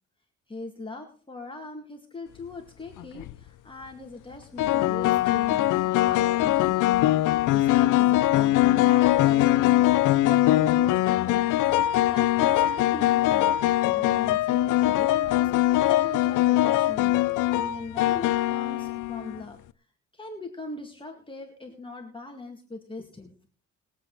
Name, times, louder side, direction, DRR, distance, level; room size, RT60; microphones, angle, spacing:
voice 1, 0.5-5.7 6.0-13.5 13.8-19.6 20.1-23.3, left 3 dB, 15° left, 2 dB, 2.1 m, -40 dB
sound 1, 3.0-3.3 4.6-19.4, left 15 dB, 90° left, 0.6 m, -22 dB
21.5 x 8.1 x 4.0 m, 0.40 s
cardioid pair, 90°, 30 cm